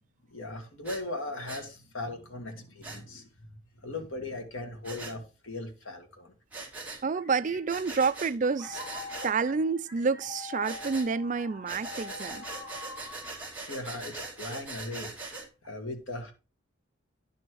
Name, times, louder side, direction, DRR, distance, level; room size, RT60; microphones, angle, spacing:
voice 1, 0.3-3.5 3.8-6.3 13.5-16.3, left 2 dB, 85° left, 1.9 m, -39 dB
Breathing, 0.8-1.0 1.5-1.6 2.8-3.0 4.8-5.1 6.5-7.0 7.7-8.3 8.7-9.3 10.6-11.1 11.7-15.5, right 3 dB, 10° right, 1.7 m, -41 dB
sound 1, 6.9-14.4, left 3 dB, 60° left, 3.5 m, -45 dB
voice 2, 7.0-8.8 9.2-12.4, right 5 dB, 40° right, 0.4 m, -29 dB
10.5 x 4.3 x 4.7 m
head